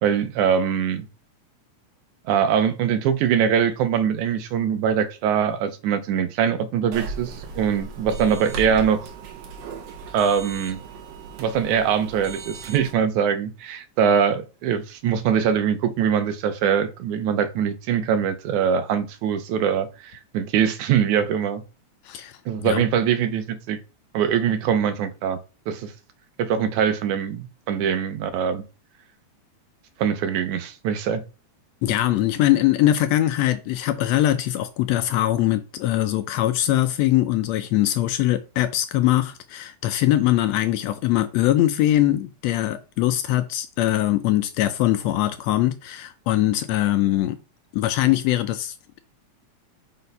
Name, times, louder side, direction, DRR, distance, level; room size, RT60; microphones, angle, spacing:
voice 1, 0.0-1.1 2.3-9.1 10.1-10.8 11.4-21.6 22.5-23.8 24.1-25.4 25.7-25.9 26.4-28.6 30.0-31.2, right 8 dB, 90° right, 2.2 m, -22 dB
sound 1, 6.9-12.9, right 4 dB, 65° right, 2.0 m, -37 dB
voice 2, 22.0-22.4 22.6-22.8 31.8-47.4 47.7-49.0, left 14 dB, 80° left, 1.6 m, -22 dB
5.4 x 4.1 x 5.3 m
omnidirectional pair, 3.4 m